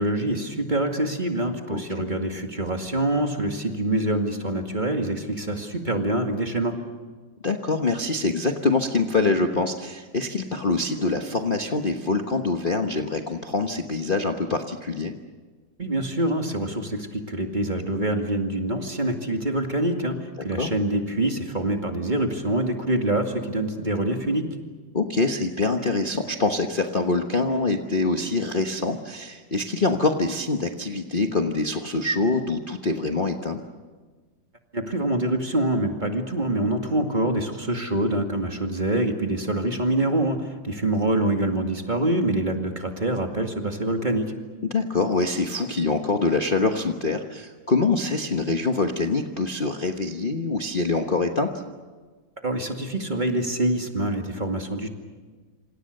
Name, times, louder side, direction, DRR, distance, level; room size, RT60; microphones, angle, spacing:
voice 1, 0.0-6.7 15.8-24.5 34.7-44.3 52.4-54.9, right 1 dB, 25° right, 3 dB, 2.3 m, -25 dB
voice 2, 7.4-15.1 20.6-20.7 24.9-33.6 44.7-51.5, left 3 dB, 30° left, 4 dB, 1.2 m, -25 dB
27.5 x 26.5 x 6.6 m, 1.4 s
omnidirectional pair, 2.1 m